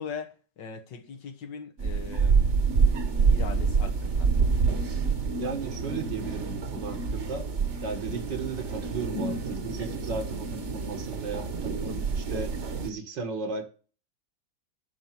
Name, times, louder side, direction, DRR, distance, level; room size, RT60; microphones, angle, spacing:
voice 1, 0.0-2.4 3.3-4.3, left 6 dB, 75° left, 2.0 m, -40 dB
sound 1, 1.8-12.9, right 5 dB, 45° right, 1.4 m, -27 dB
voice 2, 5.4-7.5 7.8-12.5 12.8-13.7, right 4 dB, 75° right, 2.3 m, -35 dB
11.0 x 4.3 x 7.6 m
omnidirectional pair, 1.9 m